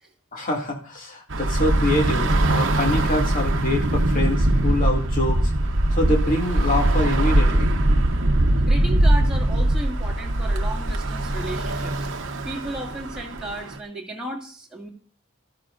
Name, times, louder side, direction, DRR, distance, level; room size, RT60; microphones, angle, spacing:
voice 1, 0.3-5.5 5.9-7.7, left 1 dB, 40° left, 0 dB, 2.2 m, -25 dB
Bus / Traffic noise roadway noise, 1.3-13.8, right 1 dB, 60° right, 0.9 m, -21 dB
voice 2, 8.6-11.9 12.4-14.9, right 1 dB, 5° right, -3 dB, 2.4 m, -34 dB
17.0 x 13.5 x 2.6 m, 0.43 s
head